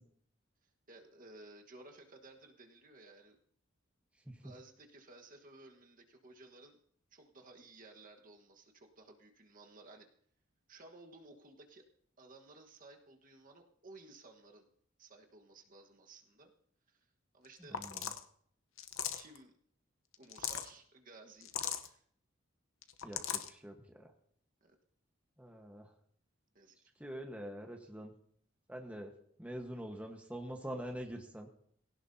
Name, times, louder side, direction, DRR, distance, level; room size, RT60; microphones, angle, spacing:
voice 1, 0.6-3.4 4.4-6.8 7.1-10.1 10.7-11.8 12.2-14.7 15.0-16.5 16.9-17.1 17.3-17.8 19.1-19.5 20.2-21.5 21.8-22.0 23.2-23.4 24.6-24.7 26.5-26.9, right 2 dB, 40° right, 3 dB, 1.4 m, -57 dB
sound 1, 17.4-17.5 17.7-18.2 18.8-19.4 20.1-20.7 21.4-21.9 22.8-23.5, left 9 dB, 75° left, 1.0 m, -38 dB
voice 2, 17.6-18.1 23.0-24.1 25.4-25.9 27.0-28.1 28.7-29.1 29.4-31.5, equal, 5° right, 2 dB, 1.3 m, -45 dB
19.5 x 17.0 x 2.8 m, 0.62 s
head